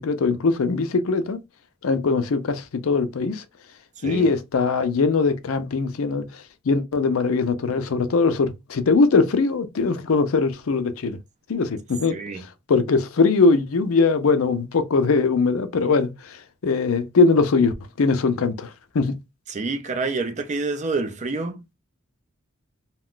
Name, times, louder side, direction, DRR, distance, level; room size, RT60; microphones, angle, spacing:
voice 1, 0.0-1.4 1.8-3.4 4.0-11.2 11.5-19.1, left 4 dB, 80° left, 0.5 m, -21 dB
voice 2, 4.0-4.3 12.1-12.4 19.5-21.7, right 3 dB, 35° right, 0.5 m, -28 dB
2.3 x 2.2 x 3.7 m
head